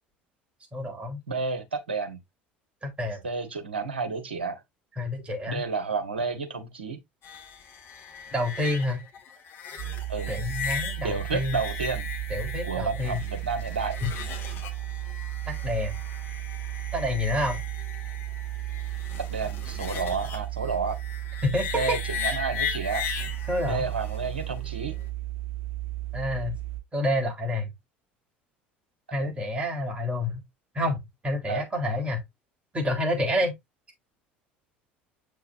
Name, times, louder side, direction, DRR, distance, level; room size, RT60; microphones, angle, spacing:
voice 1, 0.7-1.2 2.8-3.2 5.0-5.6 8.3-9.0 10.3-11.6 12.3-13.2 14.0-14.1 15.5-16.0 16.9-17.6 21.4-22.0 23.5-23.9 26.1-26.6 26.9-27.7 29.1-30.4 30.7-32.2 32.7-33.5, left 1 dB, 20° right, 3.9 m, -28 dB
voice 2, 1.3-2.2 3.2-4.6 5.5-7.0 10.1-10.3 11.0-12.1 12.7-14.0 19.3-21.0 21.7-22.0 22.2-23.1 23.6-25.0 29.2-29.3 31.5-31.6, right 4 dB, 75° right, 1.5 m, -30 dB
sound 1, 7.2-25.1, left 7 dB, 40° left, 2.1 m, -38 dB
sound 2, 9.8-26.8, right 17 dB, 50° right, 1.8 m, -34 dB
7.8 x 6.6 x 2.7 m
figure-of-eight pair, 65°, 6 cm